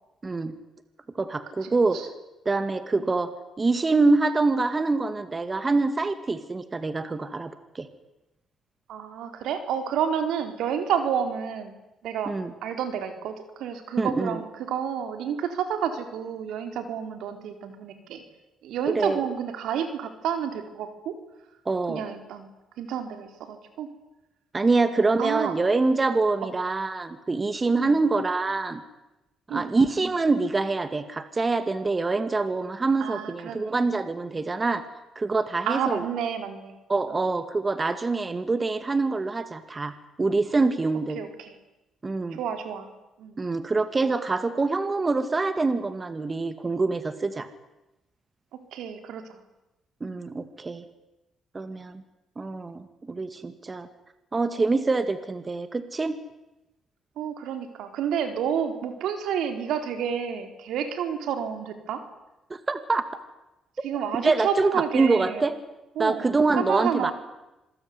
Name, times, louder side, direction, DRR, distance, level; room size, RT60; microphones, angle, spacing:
voice 1, 0.2-0.5 1.2-2.1 2.5-3.3 3.6-7.9 12.3-12.5 14.0-14.4 19.0-19.2 21.7-22.0 24.5-28.8 29.5-34.8 35.2-36.1 36.9-39.9 40.2-41.2 42.0-42.4 43.4-47.5 50.0-50.8 51.5-52.0 52.4-53.9 54.3-56.2 62.5-63.0 64.2-65.5 66.0-67.1, right 3 dB, 25° right, 11 dB, 2.2 m, -25 dB
voice 2, 1.6-2.1 8.9-11.7 12.0-12.3 12.6-18.2 18.6-21.1 21.9-22.5 22.8-23.9 25.2-25.5 26.4-26.5 27.8-27.9 29.5-29.7 33.0-33.7 35.7-36.8 41.1-41.5 42.4-42.9 43.2-43.4 48.5-49.4 57.2-62.0 63.8-65.5 66.0-66.3 66.6-67.1, right 8 dB, 80° right, 7 dB, 4.3 m, -30 dB
27.0 x 21.0 x 9.7 m, 0.97 s
cardioid pair, 90°, 0 cm